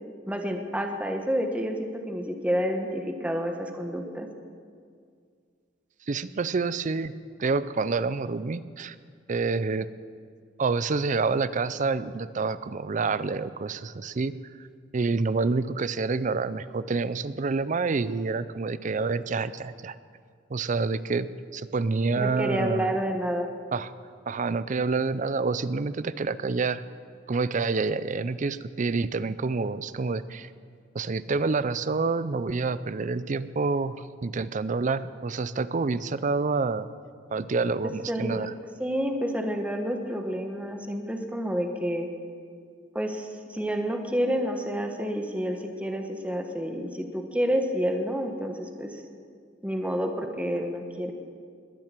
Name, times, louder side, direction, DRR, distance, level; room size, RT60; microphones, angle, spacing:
voice 1, 0.3-4.3 22.2-23.5 38.1-38.5 38.8-42.1 42.9-49.0 49.6-51.1, equal, 5° right, 4 dB, 1.1 m, -29 dB
voice 2, 6.1-7.1 7.4-8.9 9.3-9.9 10.6-14.3 14.9-19.9 20.5-21.3 21.5-22.9 23.7-23.9 24.3-26.8 27.3-30.5 30.9-36.9 37.3-38.5, right 4 dB, 45° right, 15 dB, 0.5 m, -27 dB
21.0 x 7.7 x 7.5 m, 2.1 s
head